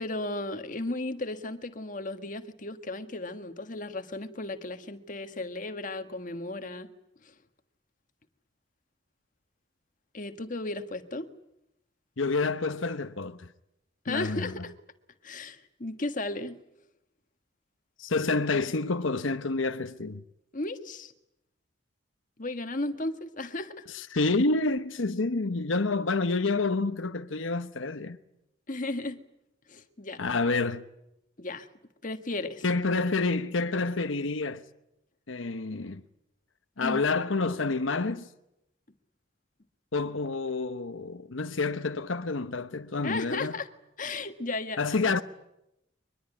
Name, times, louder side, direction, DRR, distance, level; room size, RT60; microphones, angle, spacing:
voice 1, 0.0-6.9 7.2-7.3 10.1-11.3 14.0-14.7 15.2-16.6 20.5-21.1 22.4-23.8 28.7-29.2 29.7-30.2 31.4-31.7 32.0-32.6 36.8-37.0 43.0-43.7 44.0-44.8, left 2 dB, 40° left, 1.5 m, -35 dB
voice 2, 12.2-13.5 14.1-14.5 18.0-20.2 23.9-28.2 30.2-30.8 32.6-34.6 35.3-36.0 36.8-38.3 39.9-43.6 44.8-45.2, left 3 dB, 85° left, 1.0 m, -28 dB
23.0 x 21.5 x 9.8 m
head